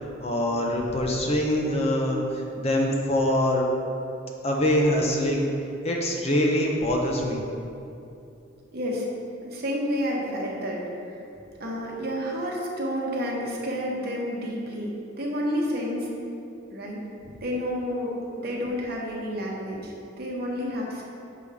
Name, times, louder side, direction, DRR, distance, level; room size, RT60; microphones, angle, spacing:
voice 1, 0.2-3.7 4.4-5.5 5.8-7.4 18.4-18.5, left 1 dB, 30° left, 0 dB, 0.6 m, -24 dB
voice 2, 8.7-9.1 9.4-10.8 11.6-16.1 16.7-17.0 17.4-21.0, equal, 50° right, -2 dB, 1.0 m, -30 dB
6.8 x 3.5 x 4.9 m, 2.7 s
head